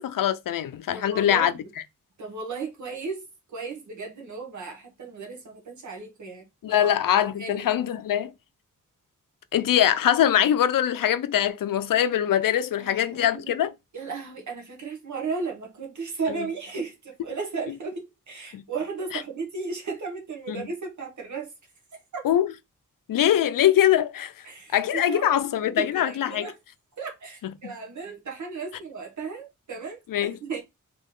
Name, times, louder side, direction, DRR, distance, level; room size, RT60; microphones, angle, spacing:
voice 1, 0.0-1.5 6.6-8.3 9.5-13.7 16.3-16.5 18.5-18.6 19.1-19.2 20.5-20.7 22.2-22.5 23.1-24.3 24.7-26.5 27.4-27.7 30.1-30.4, left 10 dB, 90° left, 0.5 m, -23 dB
voice 2, 0.9-1.6 2.2-6.9 7.4-7.6 12.8-13.6 13.9-21.5 21.9-22.2 24.4-25.3 25.8-26.5 27.0-30.0 30.4-30.6, right 4 dB, 65° right, 1.1 m, -35 dB
3.7 x 3.0 x 3.7 m
wide cardioid pair, 165°, 32 cm